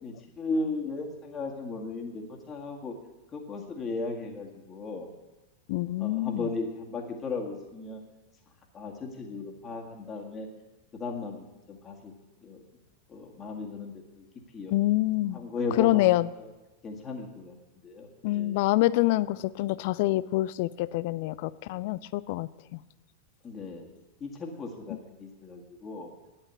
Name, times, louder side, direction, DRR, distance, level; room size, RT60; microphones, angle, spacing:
voice 1, 0.0-2.9 3.3-5.1 6.0-8.0 8.7-10.5 10.9-12.1 12.4-12.6 13.1-14.2 14.5-14.7 15.3-16.5 16.8-17.6 17.8-18.6 23.4-23.9 24.2-26.1, left 3 dB, 25° left, 1 dB, 1.9 m, -36 dB
voice 2, 5.7-6.5 14.7-15.4 15.8-16.3 18.2-22.8 24.9-25.0, left 17 dB, 50° left, 19 dB, 0.3 m, -26 dB
10.0 x 8.8 x 8.2 m, 1.1 s
figure-of-eight pair, 90°, 0 cm